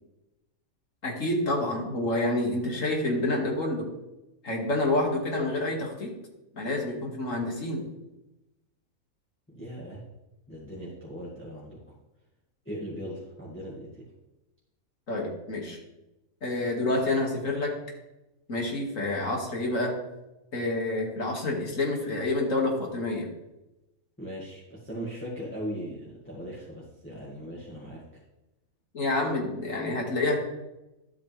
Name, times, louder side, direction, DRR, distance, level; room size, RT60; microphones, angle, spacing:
voice 1, 1.0-3.9 4.4-6.1 6.5-7.8 15.1-15.8 16.4-17.8 18.5-20.0 20.5-23.3 28.9-30.4, left 2 dB, 65° left, -1 dB, 2.5 m, -28 dB
voice 2, 9.5-10.0 10.5-11.8 12.7-14.1 24.2-28.1, equal, 10° left, -7 dB, 2.0 m, -39 dB
12.5 x 8.3 x 3.4 m, 0.98 s
omnidirectional pair, 1.5 m